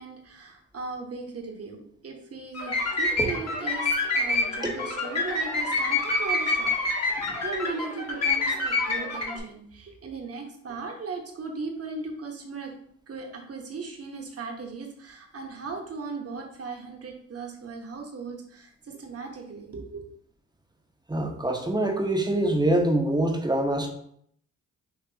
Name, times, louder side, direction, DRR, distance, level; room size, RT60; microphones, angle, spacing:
voice 1, 0.0-6.8 7.0-12.7 13.1-20.0, right 4 dB, 45° right, 2 dB, 1.3 m, -37 dB
sound 1, 2.5-9.4, left 2 dB, 55° left, 1.9 m, -27 dB
voice 2, 21.1-23.9, right 1 dB, 15° right, 2 dB, 1.0 m, -24 dB
6.1 x 2.9 x 2.9 m, 0.66 s
supercardioid pair, 50°, 32 cm